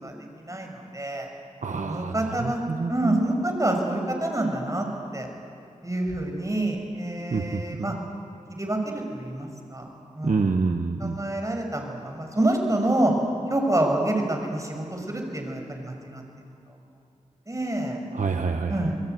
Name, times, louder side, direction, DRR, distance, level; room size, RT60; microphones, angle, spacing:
voice 1, 0.0-1.3 1.8-2.6 2.9-4.9 5.1-5.3 5.8-8.0 8.6-9.8 10.1-10.5 11.0-13.1 13.5-16.2 17.5-18.0 18.7-19.0, right 1 dB, 25° right, 2 dB, 6.1 m, -27 dB
voice 2, 1.6-3.2 7.3-7.9 10.2-11.2 18.1-18.9, right 4 dB, 70° right, 5 dB, 1.1 m, -27 dB
27.5 x 22.0 x 9.3 m, 2.8 s
wide cardioid pair, 70°, 13 cm